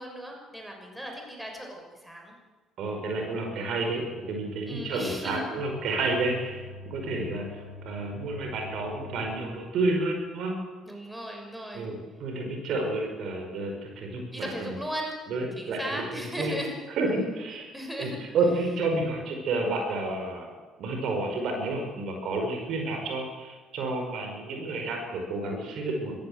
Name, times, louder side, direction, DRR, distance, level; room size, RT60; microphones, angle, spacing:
voice 1, 0.0-2.3 4.7-5.5 10.9-11.9 14.3-15.2 15.6-16.7 17.7-18.2, equal, 5° right, 1 dB, 6.3 m, -36 dB
voice 2, 2.8-10.5 11.7-14.7 15.3-16.5 17.0-20.5 20.8-26.1, right 2 dB, 55° right, 3 dB, 5.2 m, -30 dB
sound 1, 3.0-9.8, left 2 dB, 90° right, 4.8 m, -46 dB
25.5 x 14.5 x 8.1 m, 1.3 s
figure-of-eight pair, 50°, 0 cm